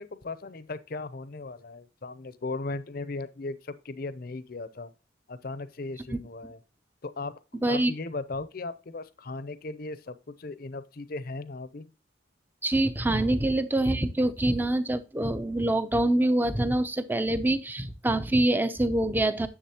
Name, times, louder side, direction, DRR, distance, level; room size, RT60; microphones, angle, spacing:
voice 1, 0.0-4.9 5.3-6.6 7.0-11.8, left 3 dB, 50° left, 0.6 m, -37 dB
voice 2, 12.6-19.5, right 1 dB, 10° right, 0.5 m, -25 dB
10.0 x 7.1 x 2.9 m
head